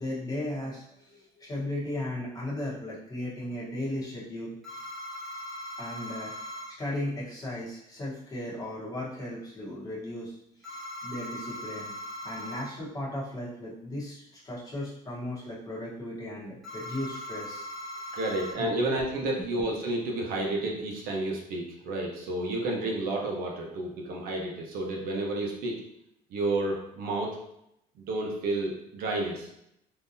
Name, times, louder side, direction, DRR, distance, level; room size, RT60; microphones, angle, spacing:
voice 1, 0.0-4.5 5.8-6.3 6.8-10.4 10.6-11.9 12.2-17.7 18.6-18.7, left 1 dB, 20° left, -7 dB, 1.1 m, -36 dB
sound 1, 4.6-6.7 10.6-12.7 16.6-18.5, left 1 dB, ahead, 1.2 m, -39 dB
voice 2, 18.1-25.8 26.3-27.4 28.1-29.5, right 2 dB, 70° right, -1 dB, 0.8 m, -31 dB
3.7 x 2.7 x 2.6 m, 0.78 s
cardioid pair, 155°, 16 cm